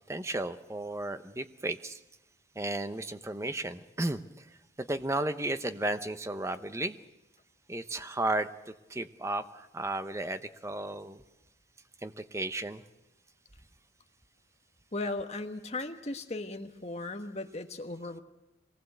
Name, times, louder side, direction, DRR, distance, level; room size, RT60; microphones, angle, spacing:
voice 1, 0.1-2.0 2.5-7.0 7.7-11.2 12.0-12.8, right 2 dB, 15° right, 10 dB, 0.8 m, -34 dB
voice 2, 14.9-18.2, left 2 dB, 35° left, 6 dB, 1.4 m, -37 dB
24.0 x 19.0 x 8.0 m, 0.98 s
head